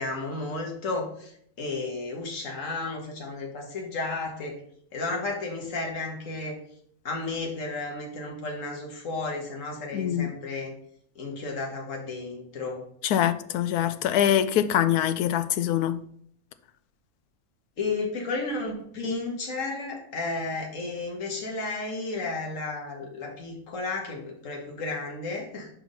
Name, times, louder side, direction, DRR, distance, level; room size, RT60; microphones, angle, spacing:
voice 1, 0.0-4.6 4.9-6.6 7.0-10.7 11.2-12.8 17.8-25.7, left 3 dB, 60° left, 1.8 m, -33 dB
voice 2, 9.9-10.3 13.0-16.0, left 10 dB, 90° left, 1.1 m, -24 dB
5.9 x 4.3 x 5.2 m
omnidirectional pair, 1.6 m